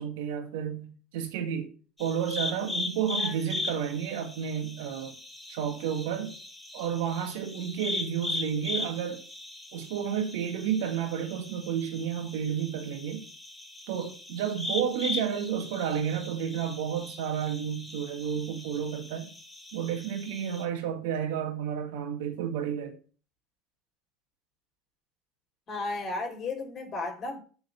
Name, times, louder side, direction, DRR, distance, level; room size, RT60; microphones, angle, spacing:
voice 1, 0.0-1.7 2.0-5.2 5.5-6.3 6.7-9.2 9.7-13.2 13.9-19.3 19.7-23.0, right 8 dB, 70° right, 2.2 m, -31 dB
sound 1, 2.0-20.6, left 2 dB, 10° left, 2.9 m, -39 dB
voice 2, 25.7-27.4, left 3 dB, 35° left, 3.4 m, -34 dB
8.7 x 4.7 x 7.2 m
hypercardioid pair, 80°, 0 cm